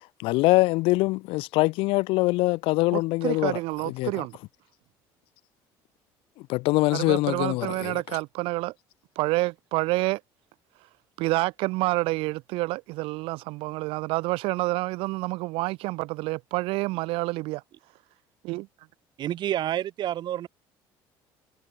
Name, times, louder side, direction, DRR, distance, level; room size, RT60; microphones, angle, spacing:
voice 1, 0.2-3.6 4.0-4.1 6.5-8.0, left 22 dB, 80° left, 0.7 m, -23 dB
voice 2, 2.9-4.4 6.9-8.7 9.2-10.2 11.2-17.6 18.4-18.7, right 22 dB, 80° right, 2.0 m, -28 dB
voice 3, 19.2-20.5, right 12 dB, 55° right, 6.2 m, -28 dB
cardioid pair, 120°, 9 cm